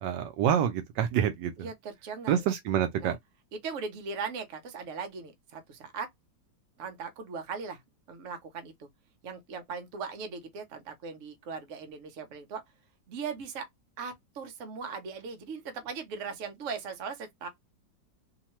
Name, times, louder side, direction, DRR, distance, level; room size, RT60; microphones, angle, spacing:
voice 1, 0.0-1.7 2.3-3.2, right 9 dB, 75° right, 1.2 m, -27 dB
voice 2, 1.6-2.4 3.0-3.2 3.5-6.1 6.8-7.8 8.1-8.9 9.2-12.6 13.1-13.7 14.0-17.5, right 5 dB, 55° right, 0.9 m, -39 dB
3.0 x 2.2 x 2.9 m
omnidirectional pair, 1.9 m